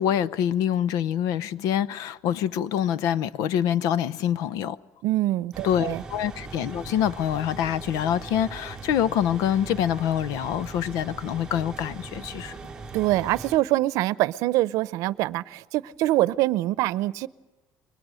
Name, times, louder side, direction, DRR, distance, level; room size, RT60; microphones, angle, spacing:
voice 1, 0.0-4.8 5.6-12.5, left 10 dB, 90° left, 0.8 m, -25 dB
voice 2, 5.0-6.0 12.9-17.3, right 16 dB, 75° right, 0.7 m, -24 dB
sound 1, 5.5-13.6, right 4 dB, 10° right, 1.1 m, -40 dB
29.0 x 23.5 x 6.5 m
cardioid pair, 170°, 6 cm